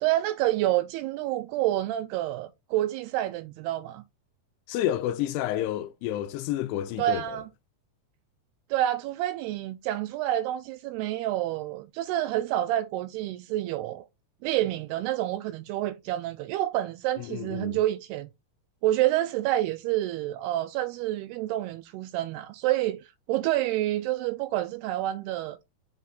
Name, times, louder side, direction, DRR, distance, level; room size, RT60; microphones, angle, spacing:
voice 1, 0.0-4.0 7.0-7.5 8.7-14.0 14.4-18.3 18.8-23.0 23.3-25.6, right 14 dB, 85° right, 2.6 m, -28 dB
voice 2, 4.7-7.4 17.2-17.8, left 12 dB, 85° left, 2.7 m, -30 dB
5.9 x 5.4 x 3.6 m
omnidirectional pair, 4.8 m